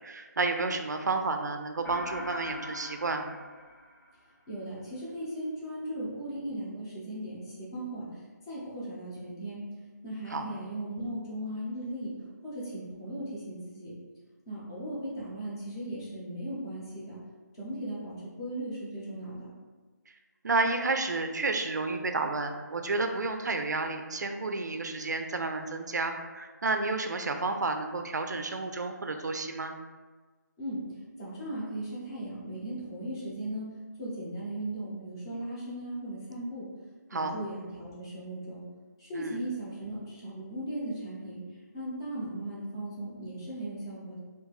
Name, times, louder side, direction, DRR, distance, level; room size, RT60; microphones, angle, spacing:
voice 1, 0.0-3.3 10.3-10.5 20.4-29.7 37.1-37.3 39.1-39.4, right 3 dB, 65° right, 6 dB, 0.4 m, -31 dB
sound 1, 1.8-4.5, left 1 dB, 90° left, 1.0 m, -42 dB
voice 2, 4.5-9.6 10.0-12.1 12.4-13.9 14.5-17.2 17.6-19.5 30.6-30.8 31.2-33.7 34.0-36.7 37.1-38.6 39.0-41.4 41.7-44.2, right 1 dB, 15° left, -8 dB, 0.6 m, -37 dB
2.8 x 2.5 x 3.8 m, 1.4 s
figure-of-eight pair, 170°, 10 cm